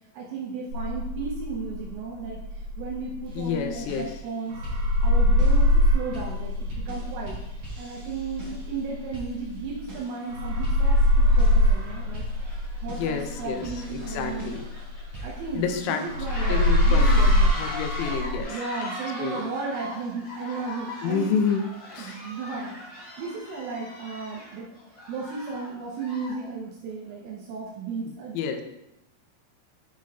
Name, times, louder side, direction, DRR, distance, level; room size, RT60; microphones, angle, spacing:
voice 1, 0.1-4.6 5.0-7.4 7.8-14.6 15.2-17.6 18.5-21.3 22.0-28.4, right 4 dB, 80° right, -4 dB, 3.4 m, -35 dB
sound 1, 0.7-4.2 4.5-10.0 10.3-15.8 16.1-18.4, left 1 dB, 55° right, 4.3 m, -23 dB
sound 2, 3.2-16.7, right 3 dB, 40° right, 2.5 m, -45 dB
voice 2, 3.4-4.1 12.9-14.7 15.5-16.0 16.5-17.2 17.5-18.6 19.2-19.5 21.0-21.6 21.9-22.2 28.3-28.6, left 6 dB, 85° left, 5 dB, 3.2 m, -29 dB
sound 3, 9.1-9.2 9.9-10.2 10.5-26.5, equal, 55° left, 3.5 m, -39 dB
8.9 x 4.9 x 2.3 m, 0.85 s
omnidirectional pair, 5.9 m